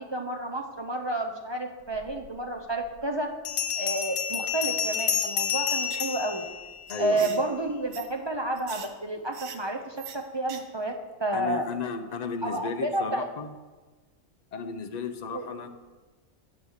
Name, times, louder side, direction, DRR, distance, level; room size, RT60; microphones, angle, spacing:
voice 1, 0.0-3.3 3.7-6.4 7.0-10.9 11.2-11.6 12.4-13.3 15.3-15.5, right 2 dB, 40° right, 2 dB, 0.3 m, -30 dB
Bell, 2.2-2.3 3.4-7.3, left 7 dB, 80° left, 1.3 m, -29 dB
sound 1, 5.8-6.1 6.4-6.5 6.9-7.4 7.9-8.1 8.6-8.9 9.3-9.6 10.0-10.2 10.5-10.6 10.9-11.0, right 8 dB, 75° right, 1.2 m, -41 dB
voice 2, 6.9-7.4 11.3-13.5 14.5-15.7, left 5 dB, 55° left, 7 dB, 0.4 m, -34 dB
8.4 x 5.9 x 6.4 m, 1.2 s
omnidirectional pair, 1.4 m